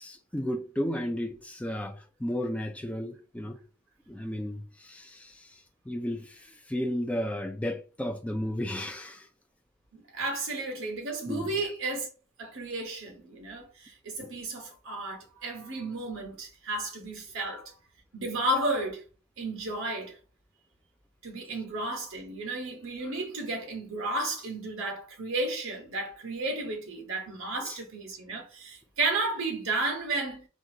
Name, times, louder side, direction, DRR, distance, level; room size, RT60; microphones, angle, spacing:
voice 1, 0.0-3.6 4.1-5.5 5.9-6.4 6.7-9.3 11.3-11.5 14.2-14.3 17.4-17.6 23.0-23.1 27.6-27.8, equal, 5° left, 0.3 m, -33 dB
voice 2, 9.9-12.1 12.4-17.7 18.1-19.0 19.4-20.2 21.2-30.5, right 2 dB, 65° right, 1.1 m, -33 dB
3.8 x 2.4 x 2.8 m
head